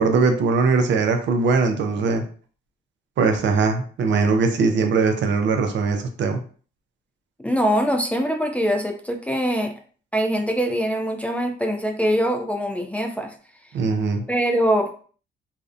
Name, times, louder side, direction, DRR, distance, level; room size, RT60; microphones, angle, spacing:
voice 1, 0.0-2.2 3.2-6.4 13.7-14.2, right 4 dB, 65° right, 6 dB, 0.5 m, -20 dB
voice 2, 7.4-9.7 10.1-13.3 14.3-15.0, equal, 5° left, 3 dB, 0.3 m, -23 dB
2.5 x 2.1 x 2.4 m, 0.42 s
cardioid pair, 90°, 20 cm